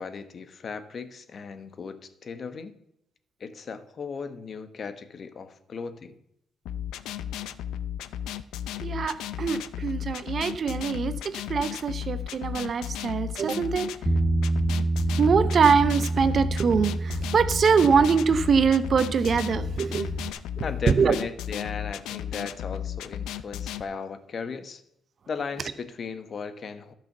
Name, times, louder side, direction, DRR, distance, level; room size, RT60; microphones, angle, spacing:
voice 1, 0.0-2.7 3.4-6.2 20.6-24.8 25.3-26.9, left 5 dB, 50° left, 11 dB, 1.1 m, -36 dB
sound 1, 6.7-23.8, left 10 dB, 90° left, 0.5 m, -34 dB
voice 2, 8.8-13.9 15.2-20.1 21.0-21.1, right 6 dB, 50° right, 12 dB, 0.8 m, -23 dB
Bass guitar, 14.1-20.3, right 2 dB, ahead, 0.6 m, -28 dB
12.0 x 6.1 x 6.7 m, 0.77 s
cardioid pair, 90°, 0 cm